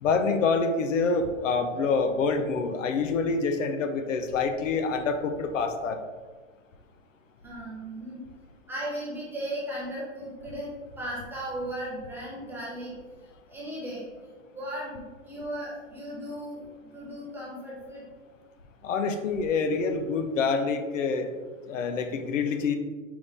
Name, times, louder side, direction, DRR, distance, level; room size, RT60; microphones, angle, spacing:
voice 1, 0.0-6.0 18.8-21.3 21.7-22.7, left 4 dB, 75° left, 7 dB, 0.7 m, -26 dB
voice 2, 7.4-8.2 8.7-10.7 11.0-12.9 13.5-16.6 16.9-18.1, right 1 dB, 5° right, -7 dB, 0.5 m, -36 dB
4.9 x 3.5 x 2.6 m, 1.4 s
hypercardioid pair, 145°, 38 cm